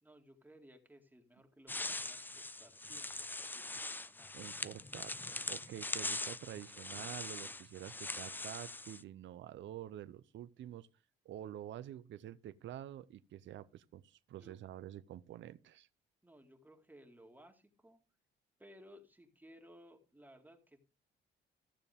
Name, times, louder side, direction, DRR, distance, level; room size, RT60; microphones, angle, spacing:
voice 1, 0.0-4.4 14.4-14.6 16.2-18.0 18.6-20.8, equal, 10° right, 2.1 m, -60 dB
sound 1, 1.7-9.0, left 2 dB, 10° left, 0.4 m, -42 dB
voice 2, 4.3-10.9 11.2-15.9, right 12 dB, 70° right, 0.7 m, -48 dB
15.0 x 6.8 x 3.5 m
cardioid pair, 90°, 20 cm